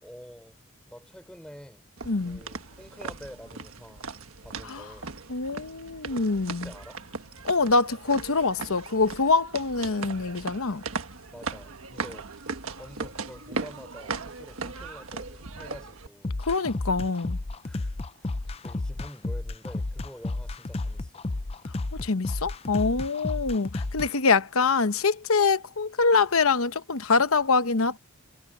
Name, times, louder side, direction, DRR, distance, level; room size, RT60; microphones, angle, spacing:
voice 1, 0.0-1.8 2.2-4.1 4.4-5.1 6.5-7.0 11.3-12.5 12.8-16.4 17.6-18.3 18.6-21.2, equal, 5° left, 4.8 m, -47 dB
sound 1, 2.0-16.1, right 4 dB, 70° right, 1.5 m, -38 dB
voice 2, 2.1-2.4 4.7-4.8 5.3-6.7 7.4-10.8 16.4-17.4 22.0-28.0, left 4 dB, 70° left, 1.0 m, -24 dB
sound 2, 16.2-24.1, left 2 dB, 25° left, 0.5 m, -32 dB
head